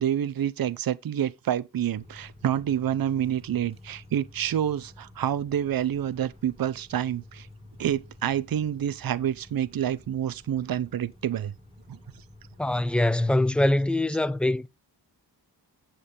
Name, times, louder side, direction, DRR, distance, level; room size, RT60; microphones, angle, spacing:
voice 1, 0.0-7.5 7.8-11.5 11.9-12.0, right 10 dB, 60° right, 0.6 m, -28 dB
sound 1, 1.9-13.1, left 1 dB, 15° right, 5.0 m, -51 dB
voice 2, 12.6-14.7, left 1 dB, 5° left, 0.4 m, -23 dB
8.9 x 7.0 x 3.8 m
wide cardioid pair, 100°, 41 cm